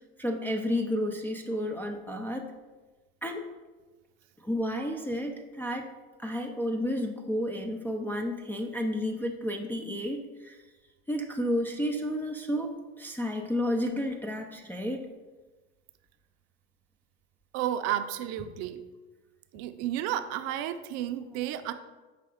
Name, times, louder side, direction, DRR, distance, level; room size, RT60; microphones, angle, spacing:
voice 1, 0.2-2.5 3.2-3.5 4.4-5.9 6.2-10.6 11.1-15.1, equal, 5° left, 0 dB, 0.3 m, -31 dB
voice 2, 17.5-18.8 19.5-21.7, right 11 dB, 50° right, 10 dB, 0.5 m, -32 dB
5.7 x 3.4 x 5.0 m, 1.2 s
hypercardioid pair, 100°, 33 cm